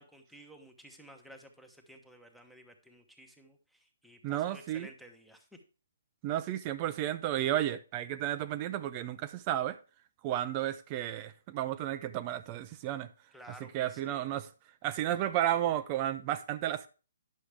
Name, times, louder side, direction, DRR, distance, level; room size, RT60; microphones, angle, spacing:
voice 1, 0.0-5.6 13.3-14.3, equal, ahead, 1.0 m, -54 dB
voice 2, 4.2-4.9 6.2-9.8 10.2-13.1 13.7-14.5 14.8-16.9, right 12 dB, 25° right, 0.4 m, -32 dB
9.8 x 6.3 x 3.4 m
hypercardioid pair, 160°, 0 cm